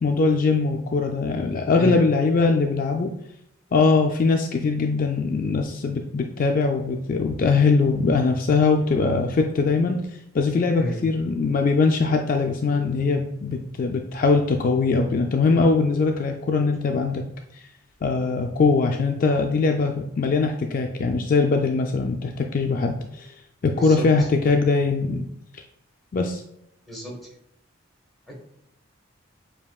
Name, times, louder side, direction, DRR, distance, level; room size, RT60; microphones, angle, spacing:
voice 1, 0.0-3.1 3.7-10.0 10.3-17.2 18.0-23.3 23.6-25.2 25.5-25.6 26.1-26.4, left 4 dB, 45° left, 4 dB, 0.3 m, -21 dB
voice 2, 23.7-24.1 26.9-27.2 28.3-28.4, equal, ahead, -2 dB, 1.3 m, -31 dB
7.2 x 2.8 x 2.3 m, 0.79 s
head